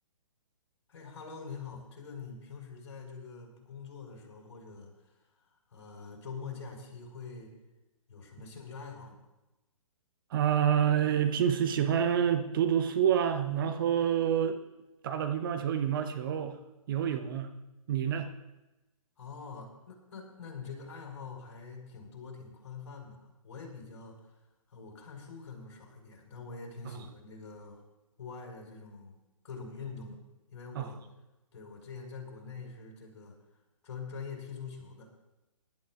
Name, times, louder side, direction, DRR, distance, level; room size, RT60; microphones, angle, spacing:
voice 1, 0.9-7.5 8.1-9.2 19.2-24.3 24.7-27.8 28.2-29.2 29.4-30.2 30.5-31.0 31.5-33.4 33.8-35.1, left 5 dB, 50° left, 0 dB, 4.2 m, -45 dB
voice 2, 10.3-14.6 15.0-16.6 16.9-17.5 17.9-18.3 30.7-30.9, right 9 dB, 40° right, 7 dB, 0.8 m, -27 dB
23.5 x 12.0 x 2.4 m, 1.0 s
figure-of-eight pair, 130°, 18 cm